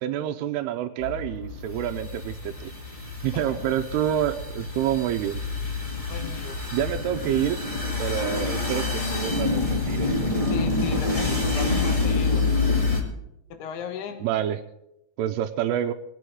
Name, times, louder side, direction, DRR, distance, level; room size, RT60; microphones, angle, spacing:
voice 1, 0.0-2.7 3.2-5.4 6.7-7.6 8.0-10.1 14.2-14.6 15.2-15.9, right 11 dB, 90° right, 4 dB, 2.7 m, -27 dB
sound 1, 1.0-13.0, left 3 dB, 30° left, 0.6 m, -27 dB
voice 2, 6.1-6.6 10.5-12.5 13.5-14.3, left 7 dB, 80° left, 7 dB, 3.2 m, -36 dB
22.0 x 8.5 x 4.8 m, 0.85 s
omnidirectional pair, 4.5 m